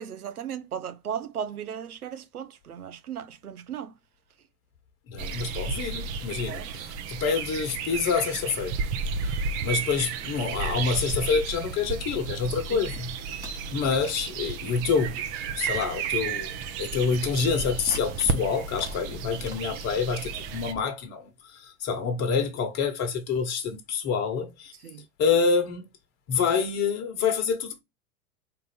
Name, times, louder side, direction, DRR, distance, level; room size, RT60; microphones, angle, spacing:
voice 1, 0.0-3.9 6.5-6.7 12.7-12.9 24.8-25.0, right 8 dB, 85° right, 0.7 m, -36 dB
voice 2, 5.1-8.8 9.2-13.2 13.7-15.3 15.6-16.5 16.8-24.7 25.2-25.8 26.3-27.8, left 5 dB, 35° left, 1.0 m, -27 dB
sound 1, 5.2-20.7, right 5 dB, 35° right, 0.7 m, -33 dB
sound 2, 12.8-13.0 13.3-13.9 14.4-14.5 15.1-15.2 15.7-16.1 16.4-16.5 16.9-17.2 17.7-18.4 18.7-20.8, equal, 10° right, 1.3 m, -43 dB
3.9 x 2.6 x 4.2 m
hypercardioid pair, 100°, 43 cm